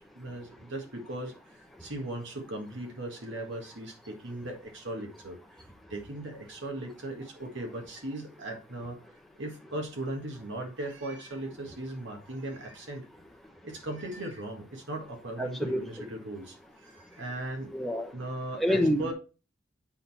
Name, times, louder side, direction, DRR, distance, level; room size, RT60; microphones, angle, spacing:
voice 1, 0.0-5.4 5.9-9.0 9.4-13.0 13.6-17.7 18.1-19.1, right 1 dB, 65° right, 1.7 m, -38 dB
voice 2, 15.4-15.8 17.7-18.1 18.6-19.1, equal, ahead, 1.0 m, -27 dB
8.5 x 3.9 x 4.2 m
head